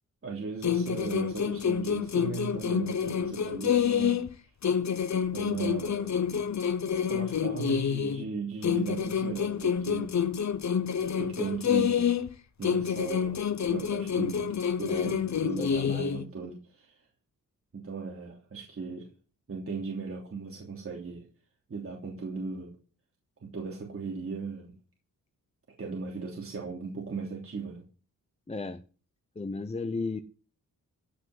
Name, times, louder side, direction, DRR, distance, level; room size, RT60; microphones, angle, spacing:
voice 1, 0.2-4.2 5.3-6.5 7.1-10.2 11.2-12.1 12.6-17.0 17.7-19.1 19.5-21.3 21.7-22.7 23.4-24.8 25.8-27.8, right 5 dB, 40° right, -1 dB, 3.2 m, -37 dB
sound 1, 0.6-4.3 4.6-8.3 8.6-12.3 12.6-16.3, left 7 dB, 60° left, 1.2 m, -28 dB
voice 2, 14.9-16.1 28.5-28.8 29.3-30.2, left 3 dB, 20° left, 10 dB, 0.9 m, -35 dB
15.5 x 6.0 x 9.5 m, 0.38 s
wide cardioid pair, 120°, 33 cm